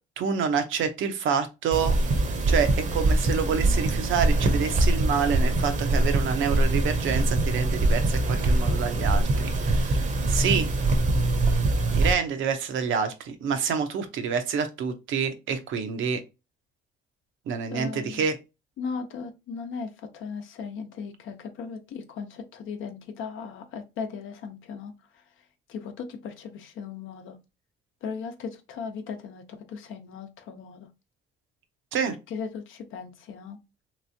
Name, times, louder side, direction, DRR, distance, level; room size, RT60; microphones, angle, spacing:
voice 1, 0.2-2.0 2.5-10.7 11.9-16.2 17.5-18.4 31.9-32.2, right 6 dB, 80° right, 0.7 m, -27 dB
sound 1, 1.7-12.1, right 2 dB, 40° right, 0.7 m, -23 dB
voice 2, 17.7-18.2 18.8-25.2 25.7-27.4 28.0-30.9 32.3-33.6, left 5 dB, 85° left, 0.7 m, -37 dB
3.3 x 3.0 x 2.7 m
cardioid pair, 90°, 20 cm